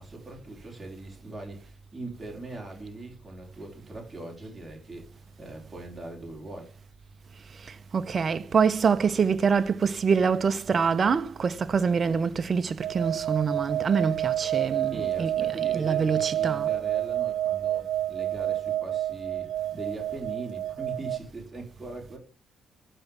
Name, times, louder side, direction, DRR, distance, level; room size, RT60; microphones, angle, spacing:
voice 1, 0.0-6.7 14.9-22.2, right 2 dB, 10° right, 4.3 m, -41 dB
voice 2, 7.6-16.7, right 6 dB, 40° right, 0.9 m, -25 dB
sound 1, 12.8-21.2, right 12 dB, 75° right, 0.5 m, -29 dB
11.5 x 5.5 x 7.1 m
cardioid pair, 90°, 0 cm